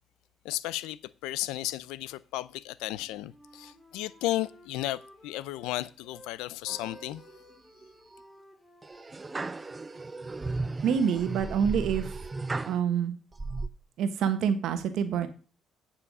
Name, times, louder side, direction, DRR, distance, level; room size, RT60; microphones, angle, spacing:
voice 1, 0.4-7.2, left 16 dB, 85° left, 0.4 m, -34 dB
Wind instrument woodwind instrument, 2.9-6.3 6.6-10.5, equal, 10° left, 4.4 m, -55 dB
sound 1, 6.7-7.4 7.8-8.2 8.8-12.8 13.3-13.7, right 3 dB, 25° right, 0.6 m, -35 dB
voice 2, 10.8-12.2 12.7-13.1 14.0-15.3, right 7 dB, 75° right, 1.3 m, -27 dB
9.6 x 5.7 x 5.4 m
supercardioid pair, 70°, 0 cm